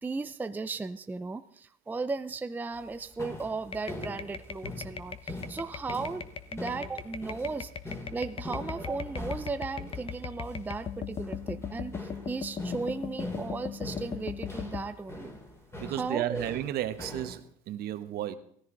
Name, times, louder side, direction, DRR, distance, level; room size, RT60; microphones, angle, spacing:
voice 1, 0.0-6.2 6.5-15.4 16.0-16.5, right 4 dB, 10° right, 10 dB, 0.5 m, -36 dB
sound 1, 2.7-17.4, left 2 dB, 15° left, 2.8 m, -43 dB
sound 2, 3.7-14.8, left 6 dB, 30° left, 1.0 m, -39 dB
voice 2, 15.8-18.4, right 13 dB, 60° right, 11 dB, 1.2 m, -33 dB
16.5 x 14.5 x 3.9 m, 0.64 s
supercardioid pair, 110°, 18 cm